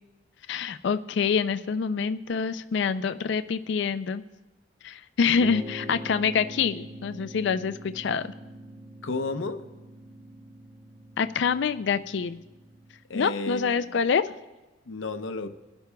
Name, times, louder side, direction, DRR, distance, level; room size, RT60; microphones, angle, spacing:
voice 1, 0.5-4.2 4.8-8.3 11.2-12.4 13.1-14.3, left 6 dB, 65° left, 12 dB, 0.4 m, -26 dB
sound 1, 5.4-13.1, equal, 25° right, 0.5 m, -43 dB
voice 2, 9.0-9.6 13.1-14.0 14.9-15.5, left 3 dB, 80° left, 9 dB, 0.7 m, -32 dB
24.0 x 11.5 x 2.3 m, 1.1 s
head